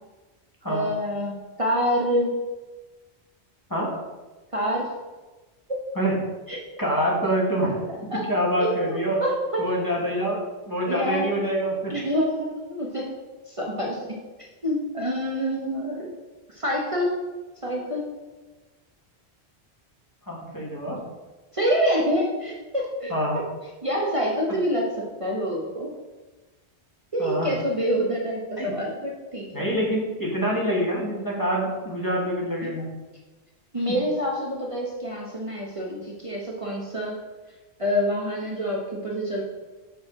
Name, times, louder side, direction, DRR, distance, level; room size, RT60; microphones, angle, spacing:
voice 1, 0.7-2.3 4.5-4.9 5.7-5.8 6.5-6.6 8.1-8.2 8.6-9.6 10.9-11.3 11.9-13.1 13.5-14.2 14.6-16.1 16.5-17.2 17.6-18.0 21.5-23.1 23.8-25.9 27.1-29.6 33.7-37.2 37.8-39.4, equal, 30° right, -3 dB, 1.1 m, -26 dB
voice 2, 6.8-7.8 8.3-9.2 9.6-10.4 10.7-11.9 20.3-21.0 23.1-23.4 27.2-27.5 28.6-28.7 29.5-32.9, equal, 20° left, -4 dB, 1.5 m, -25 dB
6.7 x 6.5 x 3.8 m, 1.2 s
omnidirectional pair, 1.1 m